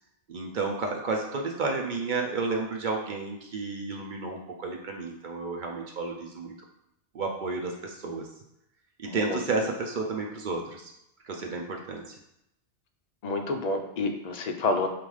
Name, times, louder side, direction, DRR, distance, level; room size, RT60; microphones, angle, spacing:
voice 1, 0.3-6.6 7.1-8.3 9.0-10.9 11.2-12.2, right 3 dB, 55° right, 1 dB, 0.6 m, -31 dB
voice 2, 9.1-9.4 13.2-14.9, left 3 dB, 60° left, 4 dB, 0.4 m, -29 dB
5.3 x 2.5 x 3.1 m, 0.81 s
omnidirectional pair, 1.2 m